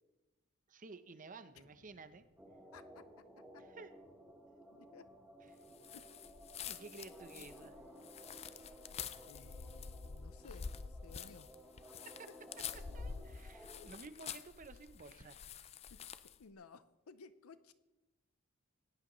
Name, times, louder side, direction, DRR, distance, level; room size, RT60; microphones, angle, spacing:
voice 1, 0.7-2.2 3.6-3.9 6.6-7.8 12.2-12.3 12.9-15.4, right 3 dB, 40° right, 11 dB, 0.7 m, -53 dB
sound 1, 1.5-12.5, left 1 dB, 45° left, 0.9 m, -73 dB
Choir Tape Chop - Cleaned, 2.4-13.9, equal, 10° right, 1.2 m, -57 dB
voice 2, 2.7-3.0 4.7-5.0 5.9-6.1 9.3-11.5 12.9-13.3 13.8-13.9 15.9-16.1 16.4-17.7, left 5 dB, 90° left, 14 dB, 0.6 m, -58 dB
sound 2, 5.8-16.4, left 6 dB, 30° left, 0.3 m, -48 dB
16.5 x 10.0 x 3.1 m, 1.1 s
head